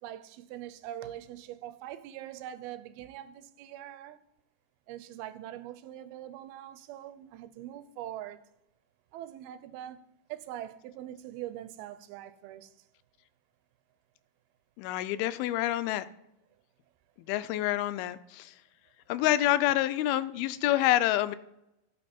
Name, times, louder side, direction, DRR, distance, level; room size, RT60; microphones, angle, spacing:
voice 1, 0.0-4.2 4.9-8.5 9.1-10.0 10.3-12.7, right 12 dB, 90° right, 2.5 m, -43 dB
voice 2, 14.8-16.1 17.3-18.5 19.1-21.4, left 14 dB, 90° left, 2.5 m, -27 dB
16.0 x 5.4 x 4.3 m
omnidirectional pair, 4.3 m